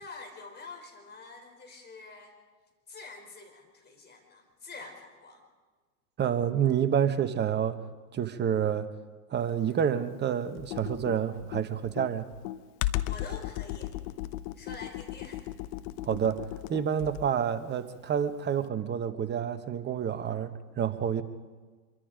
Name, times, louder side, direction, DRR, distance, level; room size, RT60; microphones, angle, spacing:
voice 1, 0.0-2.3 2.9-5.4 13.0-13.9 14.5-15.5, left 3 dB, 20° left, 3 dB, 4.5 m, -46 dB
voice 2, 6.2-7.8 8.1-8.9 9.3-12.3 16.0-21.2, right 8 dB, 20° right, 9 dB, 1.3 m, -28 dB
Computer keyboard, 10.6-17.4, left 15 dB, 45° left, 1.0 m, -36 dB
25.5 x 23.5 x 5.2 m, 1.4 s
hypercardioid pair, 100°, 46 cm